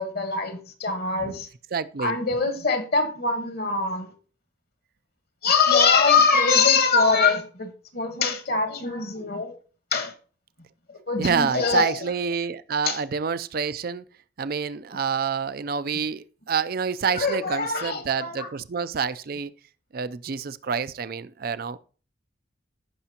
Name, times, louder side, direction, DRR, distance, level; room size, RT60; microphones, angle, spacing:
voice 1, 0.0-1.5 2.0-4.1 5.4-9.5 9.9-10.1 10.9-12.1 12.9-13.0 14.9-15.0 17.1-18.5, left 4 dB, 50° left, 1.3 m, -23 dB
voice 2, 1.7-2.2 11.2-14.0 14.4-19.5 19.9-21.8, right 6 dB, 50° right, 0.4 m, -28 dB
15.5 x 5.9 x 2.9 m
head